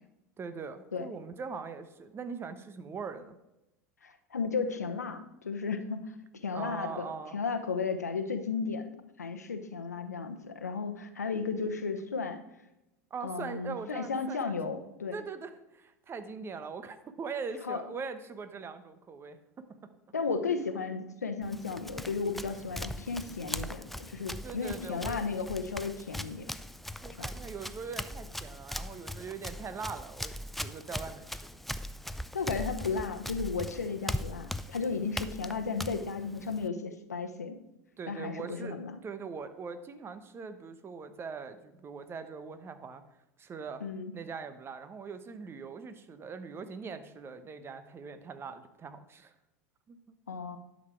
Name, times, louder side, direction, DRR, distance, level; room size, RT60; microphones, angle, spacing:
voice 1, 0.4-3.4 6.5-7.4 13.1-14.6 15.1-19.6 24.4-25.4 27.0-31.5 38.0-43.0 43.4-43.8 44.1-49.3 49.9-50.0, right 5 dB, 30° right, 10 dB, 1.1 m, -41 dB
voice 2, 4.0-6.0 6.4-12.4 13.2-15.2 17.7-17.8 20.1-26.5 27.2-27.3 32.3-37.6 38.1-38.9 43.8-44.1 50.3-50.6, left 5 dB, 90° left, 9 dB, 0.9 m, -34 dB
Run, 21.4-36.7, left 1 dB, ahead, 0.4 m, -40 dB
11.0 x 6.6 x 4.5 m, 0.92 s
hypercardioid pair, 80°, 9 cm